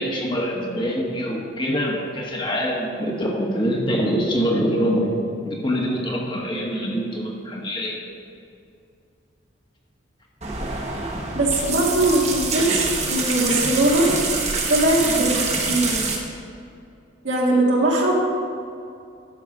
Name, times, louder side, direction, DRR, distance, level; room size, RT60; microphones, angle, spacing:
voice 1, 0.0-5.1 5.4-8.0, equal, 25° left, -1 dB, 1.3 m, -24 dB
sound 1, 10.4-16.2, right 4 dB, 35° right, 1.2 m, -25 dB
voice 2, 11.3-14.1 14.7-16.0 17.2-18.1, right 1 dB, 75° right, -2 dB, 1.9 m, -20 dB
11.0 x 6.5 x 5.0 m, 2.5 s
head